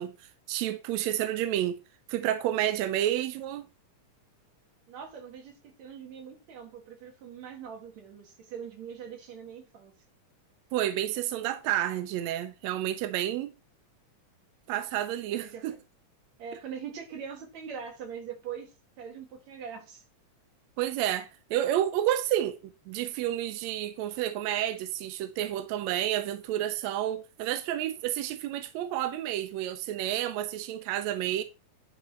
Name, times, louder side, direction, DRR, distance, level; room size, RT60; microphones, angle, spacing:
voice 1, 0.0-1.8 2.1-3.7 10.7-13.5 14.7-15.7 20.8-22.6 22.9-31.4, right 12 dB, 80° right, 1.7 m, -30 dB
voice 2, 4.9-9.9 15.3-15.8 16.4-18.7 19.0-20.0, right 7 dB, 65° right, 3.0 m, -42 dB
10.0 x 4.2 x 4.3 m
omnidirectional pair, 3.6 m